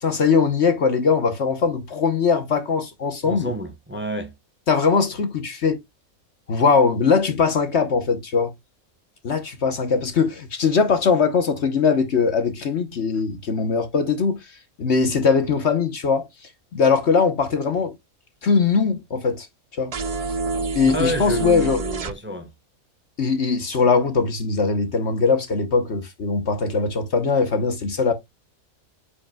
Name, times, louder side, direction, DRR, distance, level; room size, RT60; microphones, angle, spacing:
voice 1, 0.0-3.5 4.7-5.8 6.5-8.5 9.2-14.5 14.8-16.3 16.7-17.9 18.4-19.5 19.7-19.9 20.7-21.8 23.2-28.1, left 5 dB, 55° left, 1.2 m, -21 dB
voice 2, 3.2-4.3 20.8-22.5, equal, 10° right, 0.9 m, -29 dB
sound 1, 19.9-22.1, right 3 dB, 50° right, 0.4 m, -27 dB
8.5 x 5.0 x 2.3 m
omnidirectional pair, 1.5 m